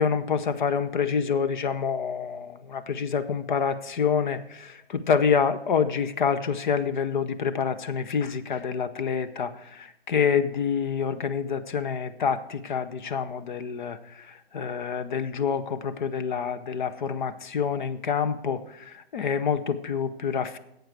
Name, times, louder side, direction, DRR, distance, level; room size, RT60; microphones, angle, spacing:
voice 1, 0.0-9.5 9.8-14.0 14.5-18.6 19.1-20.6, left 6 dB, 50° left, 12 dB, 0.7 m, -27 dB
11.5 x 8.0 x 4.6 m, 0.77 s
hypercardioid pair, 150°, 31 cm